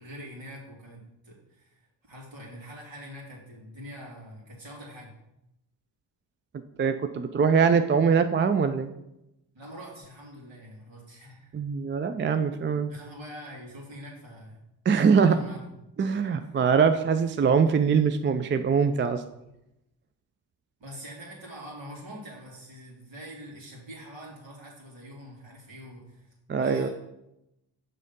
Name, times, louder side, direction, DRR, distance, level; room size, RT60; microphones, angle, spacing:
voice 1, 0.0-5.1 9.5-11.6 12.9-14.6 15.3-15.6 16.4-16.5 20.8-26.9, equal, 65° right, -3 dB, 2.6 m, -44 dB
voice 2, 6.8-8.9 11.5-12.9 14.9-15.4 16.0-19.2 26.5-26.9, right 6 dB, 25° right, 9 dB, 0.4 m, -23 dB
6.3 x 3.9 x 5.3 m, 0.88 s
supercardioid pair, 50°, 49 cm